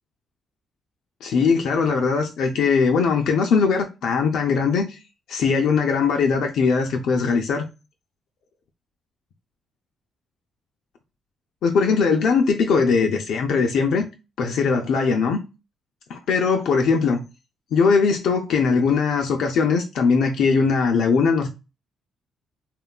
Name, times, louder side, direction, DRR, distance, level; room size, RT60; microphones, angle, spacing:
voice 1, 1.2-5.0 5.3-7.7 11.6-14.0 14.4-15.4 16.1-17.2 17.7-21.5, left 5 dB, 75° left, 0.3 m, -20 dB
3.0 x 2.2 x 2.3 m
cardioid pair, 90°, 0 cm